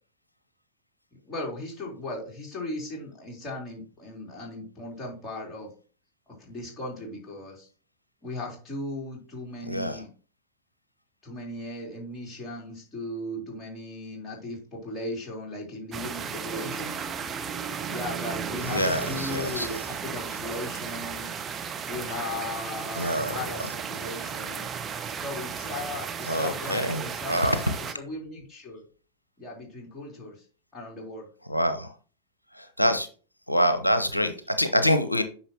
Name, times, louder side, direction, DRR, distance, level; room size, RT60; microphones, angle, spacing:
voice 1, 1.3-5.7 6.4-7.7 8.2-10.1 11.2-16.9 17.9-21.3 21.8-24.7 25.2-28.8 29.4-30.4 30.7-31.3, left 2 dB, 15° left, -3 dB, 3.8 m, -37 dB
voice 2, 9.7-10.0 18.7-19.8 22.9-23.3 26.3-27.6 31.5-31.9 32.5-33.1 33.5-35.2, equal, 85° left, 9 dB, 0.6 m, -25 dB
sound 1, 15.9-27.9, right 6 dB, 25° right, 0.8 m, -34 dB
9.5 x 5.7 x 2.9 m, 0.39 s
figure-of-eight pair, 90°, 0 cm